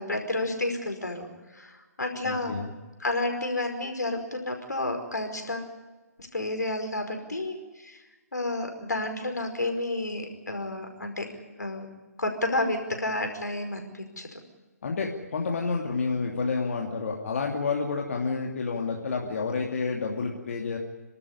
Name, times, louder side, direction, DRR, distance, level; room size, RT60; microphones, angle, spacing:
voice 1, 0.0-2.6 3.0-5.7 6.2-8.0 8.3-11.3 11.6-11.9 12.2-14.3, left 2 dB, 80° left, 5 dB, 5.1 m, -31 dB
voice 2, 2.2-2.7 14.8-20.8, left 4 dB, 50° left, 0 dB, 2.7 m, -29 dB
28.5 x 13.0 x 10.0 m, 1.3 s
figure-of-eight pair, 140°, 9 cm